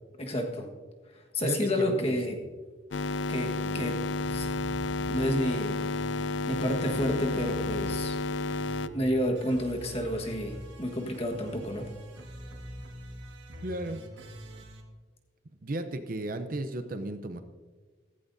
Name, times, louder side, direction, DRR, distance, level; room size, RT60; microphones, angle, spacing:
voice 1, 0.2-0.7 1.3-2.4 3.3-4.5 5.1-5.8 6.5-8.2 8.8-11.9, equal, 35° left, 2 dB, 1.5 m, -30 dB
voice 2, 1.4-2.5 3.6-3.8 13.6-14.1 15.6-17.4, right 1 dB, 50° right, 9 dB, 0.7 m, -35 dB
sound 1, 2.9-8.9, left 3 dB, 80° left, 0.4 m, -31 dB
sound 2, 4.2-5.3 5.8-8.2 8.5-14.8, equal, 90° right, 1.9 m, -44 dB
15.5 x 15.5 x 2.7 m, 1.4 s
head